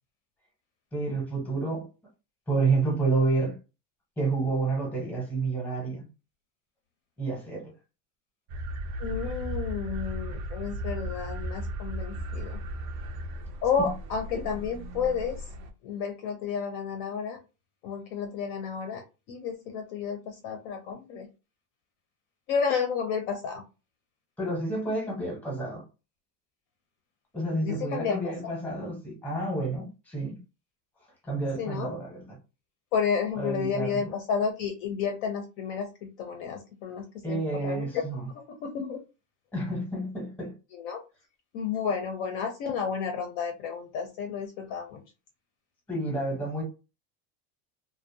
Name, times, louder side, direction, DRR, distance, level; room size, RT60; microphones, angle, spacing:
voice 1, 0.9-1.9 2.5-3.6 4.2-6.0 7.2-7.7 13.8-13.9 14.3-14.4 24.4-25.8 27.3-30.4 31.2-32.4 33.4-34.1 37.2-38.3 39.5-40.5 45.9-46.6, right 3 dB, 5° left, 0.7 m, -29 dB
sound 1, 8.5-15.7, right 1 dB, 50° right, 0.4 m, -36 dB
voice 2, 9.0-12.6 13.6-15.4 15.8-17.4 17.8-19.0 19.3-21.3 22.5-23.6 27.6-28.3 31.6-31.9 32.9-37.9 38.3-39.0 40.8-41.0 41.5-45.0, left 6 dB, 50° left, 0.4 m, -31 dB
2.5 x 2.0 x 2.6 m
cardioid pair, 165°, 45 cm